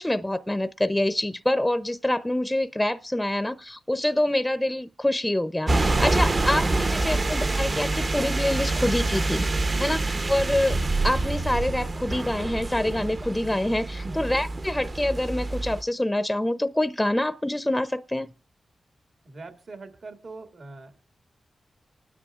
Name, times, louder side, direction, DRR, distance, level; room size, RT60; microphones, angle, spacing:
voice 1, 0.0-9.4 9.8-10.0 10.3-10.8 11.0-18.3, left 1 dB, 10° left, 0.6 m, -26 dB
sound 1, 5.7-15.8, right 2 dB, 45° right, 0.8 m, -26 dB
voice 2, 9.6-10.0 14.1-14.3 19.2-21.0, right 3 dB, 70° right, 2.1 m, -43 dB
26.0 x 9.8 x 2.4 m
cardioid pair, 60°, 0 cm